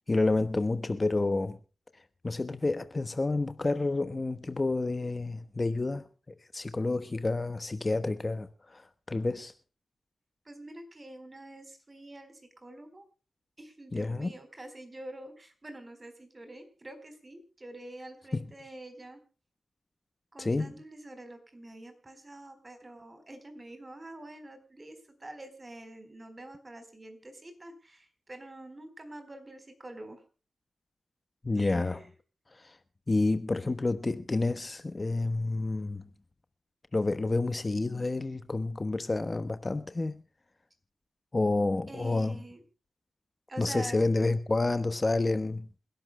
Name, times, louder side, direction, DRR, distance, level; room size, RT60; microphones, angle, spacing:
voice 1, 0.1-1.6 2.2-6.1 6.5-9.5 13.9-14.3 18.3-18.5 20.4-20.7 31.4-32.0 32.5-32.8 33.1-36.1 36.9-40.2 41.3-42.4 43.6-45.6, left 2 dB, 35° left, 1.1 m, -29 dB
voice 2, 10.5-13.0 13.6-19.2 20.3-30.2 31.5-32.1 41.9-42.6 43.5-44.0, right 1 dB, 30° right, 4.1 m, -46 dB
27.5 x 12.0 x 2.2 m
cardioid pair, 65°, 0 cm